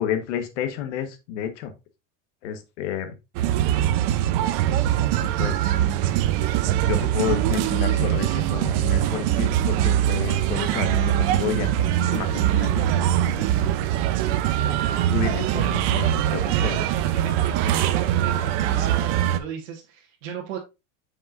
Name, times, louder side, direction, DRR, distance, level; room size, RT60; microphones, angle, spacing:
voice 1, 0.0-1.7 2.4-3.1 5.2-5.7 6.9-13.6 14.3-14.6 15.1-16.8, left 9 dB, 70° left, 9 dB, 1.5 m, -31 dB
sound 1, 3.3-19.4, right 12 dB, 50° right, 0.8 m, -22 dB
voice 2, 15.5-15.9 16.3-20.6, right 7 dB, 70° right, -2 dB, 1.7 m, -35 dB
7.7 x 5.9 x 2.6 m, 0.26 s
supercardioid pair, 155°, 37 cm